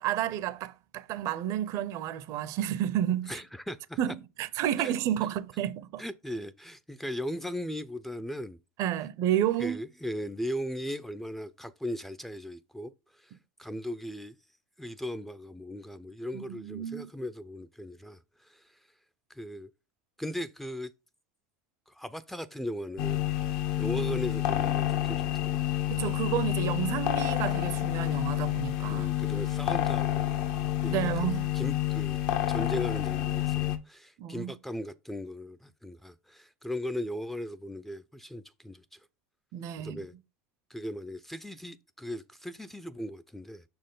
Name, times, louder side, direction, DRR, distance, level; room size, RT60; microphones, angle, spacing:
voice 1, 0.0-3.4 4.0-6.0 8.8-9.8 13.3-13.4 16.3-17.1 25.9-29.1 30.9-31.5 34.2-34.5 39.5-40.0, right 11 dB, 50° right, 0.6 m, -31 dB
voice 2, 3.3-4.0 4.8-4.9 6.0-8.6 9.6-12.9 13.2-13.3 13.6-14.3 14.8-18.6 19.3-19.7 20.2-20.9 21.9-23.2 23.8-25.7 28.9-30.5 30.8-31.3 31.5-32.2 32.5-39.0 39.8-40.1 40.7-43.6, equal, 5° left, 0.4 m, -38 dB
sound 1, 23.0-33.8, left 13 dB, 65° left, 0.9 m, -29 dB
6.1 x 4.3 x 3.8 m
hypercardioid pair, 100°, 7 cm